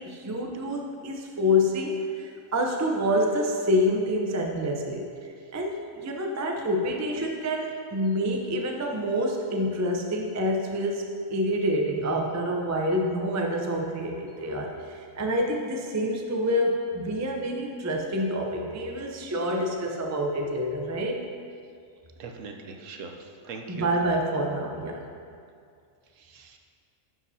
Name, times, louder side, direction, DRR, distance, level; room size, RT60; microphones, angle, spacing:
voice 1, 0.0-5.1 5.5-21.3 23.7-25.0, equal, 20° right, 1 dB, 0.4 m, -27 dB
voice 2, 22.2-23.9 26.2-26.6, right 4 dB, 70° right, 3 dB, 1.0 m, -41 dB
11.5 x 7.2 x 2.8 m, 2.4 s
omnidirectional pair, 1.4 m